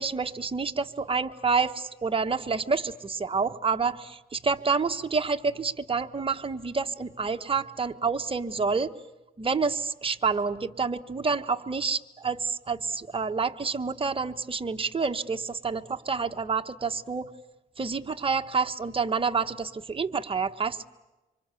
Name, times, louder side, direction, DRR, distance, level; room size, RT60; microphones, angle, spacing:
voice 1, 0.0-8.9 9.4-17.3 17.8-20.9, right 5 dB, 30° right, 7 dB, 1.3 m, -28 dB
26.0 x 25.5 x 8.4 m, 1.1 s
cardioid pair, 90°, 18 cm